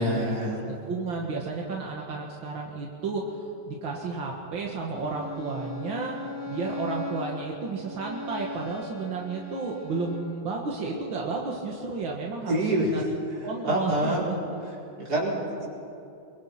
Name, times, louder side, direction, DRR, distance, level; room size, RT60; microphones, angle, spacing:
voice 1, 0.0-0.6 12.5-13.0 13.3-14.3 14.6-15.4, right 1 dB, 55° right, -4 dB, 5.3 m, -27 dB
voice 2, 0.7-6.2 6.5-13.0 13.4-14.1, right 4 dB, 90° right, -1 dB, 2.6 m, -32 dB
Bowed string instrument, 4.9-10.3, left 2 dB, 10° right, 2.8 m, -38 dB
24.5 x 23.5 x 5.9 m, 2.7 s
omnidirectional pair, 2.0 m